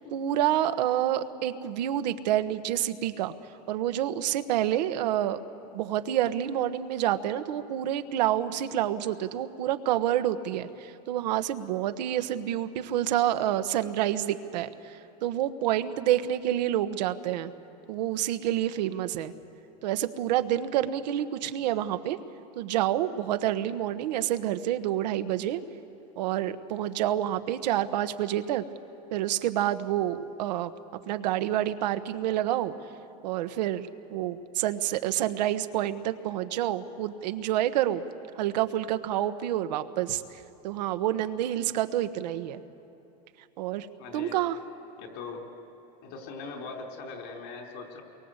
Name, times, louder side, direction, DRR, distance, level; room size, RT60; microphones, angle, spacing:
voice 1, 0.1-3.3 3.7-5.4 5.7-14.7 15.2-17.5 17.9-19.3 19.8-22.2 22.5-25.6 26.2-28.6 29.1-30.7 31.1-32.7 33.2-38.0 38.4-40.2 40.6-42.6 43.6-43.9 44.1-44.6, right 12 dB, 85° right, 10 dB, 1.3 m, -28 dB
voice 2, 44.0-44.4 45.0-45.4 46.0-48.0, left 4 dB, 60° left, 3 dB, 4.5 m, -40 dB
28.5 x 23.0 x 8.2 m, 2.9 s
supercardioid pair, 125°, 21 cm